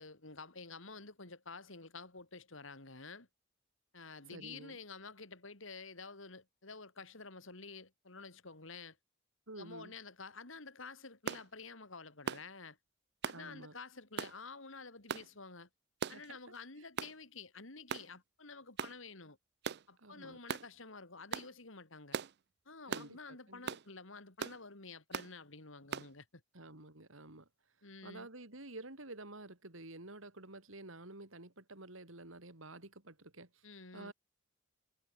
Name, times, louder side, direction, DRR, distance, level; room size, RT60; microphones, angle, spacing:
voice 1, 0.0-3.3 3.9-9.0 9.6-12.8 13.2-15.7 16.1-19.4 19.9-22.2 22.6-26.4 27.8-28.3 33.6-34.1, left 4 dB, 65° left, 3.1 m, -50 dB
voice 2, 4.3-4.8 9.5-9.9 13.3-13.8 16.1-16.4 20.0-20.4 22.9-23.7 26.5-27.5 28.0-33.6 33.9-34.1, right 2 dB, 70° right, 3.5 m, -50 dB
sound 1, 11.3-11.5 12.3-12.5 13.2-13.4 14.2-14.4 15.1-15.3 16.0-16.3 17.0-17.2 17.9-18.1 18.8-19.0 19.6-19.8 20.5-20.7 21.3-21.5 22.1-22.3 22.9-23.1 23.7-23.9 24.4-24.6 25.1-25.3 25.9-26.1, right 7 dB, 55° right, 0.5 m, -39 dB
head